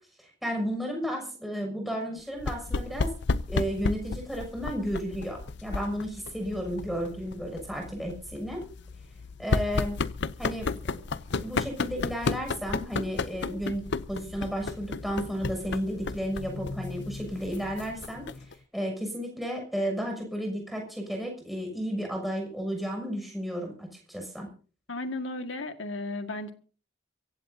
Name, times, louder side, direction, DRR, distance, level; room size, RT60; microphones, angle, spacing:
voice 1, 0.2-3.1 3.5-8.6 9.4-10.0 10.4-11.0 11.4-18.3 18.7-24.5, equal, ahead, 6.5 m, -33 dB
sound 1, 2.4-18.5, left 3 dB, 65° left, 0.7 m, -33 dB
voice 2, 24.9-26.5, left 2 dB, 80° left, 1.9 m, -34 dB
24.5 x 15.5 x 2.8 m
head